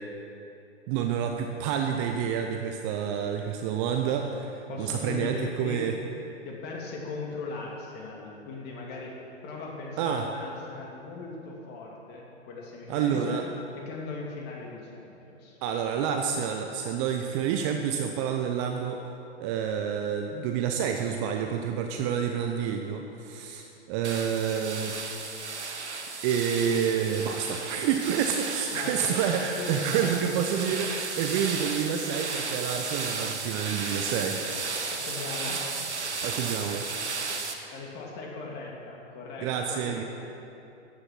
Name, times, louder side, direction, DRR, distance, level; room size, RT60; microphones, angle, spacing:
voice 1, 0.9-5.9 10.0-10.3 12.9-13.4 15.6-19.0 19.4-25.0 26.2-34.4 36.2-36.9 39.4-40.0, right 8 dB, 25° right, 4 dB, 0.7 m, -28 dB
voice 2, 4.7-5.9 6.4-9.1 9.4-15.6 28.7-29.2 29.6-30.1 34.9-35.6 37.7-40.0, left 3 dB, 30° left, -1 dB, 2.6 m, -39 dB
sound 1, 24.0-37.5, right 4 dB, 80° right, 1.5 m, -34 dB
14.0 x 9.9 x 6.2 m, 2.8 s
figure-of-eight pair, 115°, 34 cm